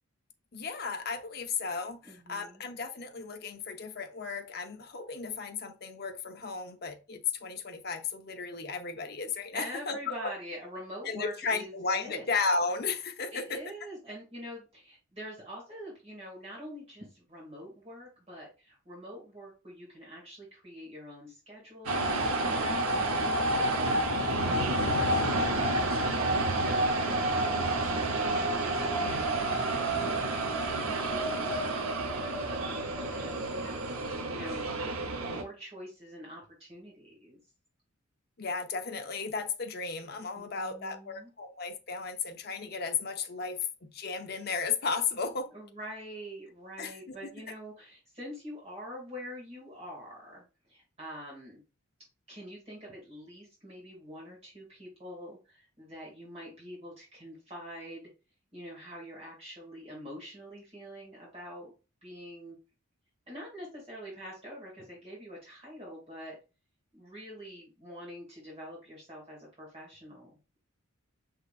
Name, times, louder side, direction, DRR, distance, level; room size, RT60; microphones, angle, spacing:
voice 1, 0.5-10.1 11.1-13.6 24.3-24.5 38.4-45.5 46.8-47.2, left 5 dB, 45° left, 0.6 m, -34 dB
voice 2, 2.0-2.6 9.5-12.2 13.3-27.6 27.9-33.8 34.3-34.8 35.3-37.4 40.4-41.3 45.5-51.6 52.3-58.1 58.5-61.7 62.0-62.6 63.3-66.4 66.9-70.3, equal, 30° right, 2.3 m, -45 dB
sound 1, 21.9-35.4, right 1 dB, 80° right, 0.9 m, -29 dB
5.6 x 3.7 x 2.4 m
head